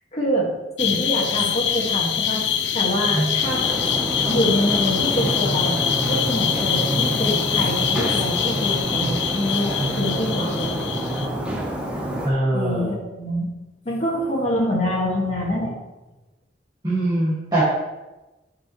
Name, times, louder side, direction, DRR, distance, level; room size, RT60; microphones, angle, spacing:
voice 1, 0.1-0.5 0.8-2.4 2.7-3.6 4.3-10.8 12.5-13.5 13.9-15.8, equal, 40° left, -3 dB, 1.9 m, -25 dB
sound 1, 0.8-11.3, left 8 dB, 80° left, 0.7 m, -24 dB
sound 2, 3.4-12.3, equal, 5° right, 1.1 m, -27 dB
voice 2, 10.4-11.4 12.2-12.9 16.8-17.6, right 1 dB, 25° right, -11 dB, 2.2 m, -24 dB
10.0 x 5.7 x 3.2 m, 1.1 s
head